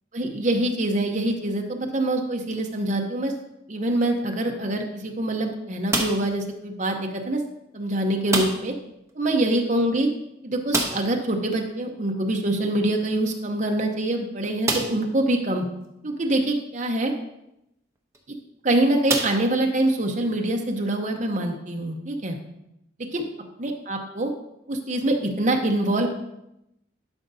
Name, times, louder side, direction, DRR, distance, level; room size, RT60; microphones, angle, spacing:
voice 1, 0.1-3.3 3.7-7.4 7.7-8.7 9.1-10.1 10.4-15.7 16.0-17.1 18.6-22.4 23.1-23.2 23.6-24.3 24.7-26.1, right 1 dB, 40° right, 3 dB, 0.8 m, -25 dB
sound 1, 5.9-6.4 8.3-8.8 9.1-9.2 9.5-9.6 10.7-11.2 13.0-13.1 13.7-13.8 14.6-15.1 15.8-15.9 18.0-18.2 19.1-19.9, right 2 dB, 15° right, 0.8 m, -27 dB
11.5 x 5.2 x 2.7 m, 0.85 s
head